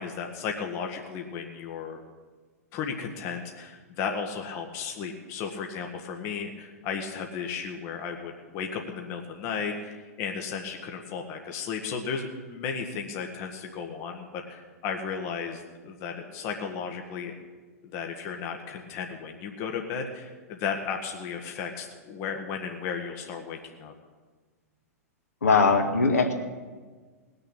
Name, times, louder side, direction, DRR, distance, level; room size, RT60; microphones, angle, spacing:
voice 1, 0.0-2.0 2.7-17.3 17.8-23.9, left 6 dB, 35° left, 3 dB, 1.4 m, -34 dB
voice 2, 25.4-26.3, left 4 dB, 70° left, 3 dB, 1.9 m, -21 dB
19.5 x 6.8 x 8.7 m, 1.4 s
figure-of-eight pair, 105°, 9 cm